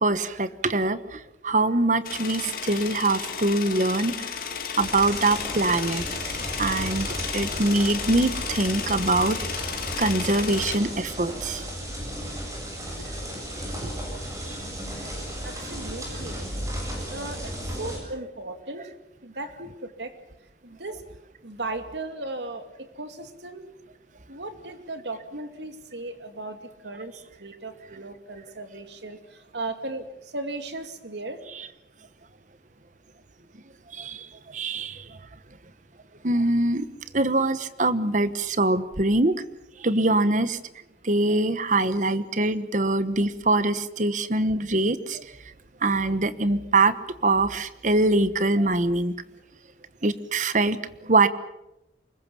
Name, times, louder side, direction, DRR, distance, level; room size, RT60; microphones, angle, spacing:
voice 1, 0.0-4.3 4.8-6.0 6.6-7.1 7.3-9.4 10.0-11.6 34.0-34.3 34.5-35.0 36.2-36.9 37.1-39.4 39.8-40.6 41.0-45.2 45.8-46.9 47.2-49.1 50.0-50.8 51.0-51.3, right 2 dB, 45° right, 14 dB, 1.2 m, -23 dB
sound 1, 2.0-10.8, left 7 dB, 55° left, 2.5 m, -33 dB
sound 2, 4.8-18.0, equal, 20° right, 8.0 m, -34 dB
voice 2, 15.4-16.4 17.1-17.5 17.8-18.9 19.2-20.1 20.6-21.0 21.4-22.6 23.0-23.6 24.3-26.6 26.8-27.1 27.4-30.1 30.3-31.4, right 2 dB, 80° right, 8 dB, 2.6 m, -36 dB
24.5 x 21.5 x 7.1 m, 0.90 s
head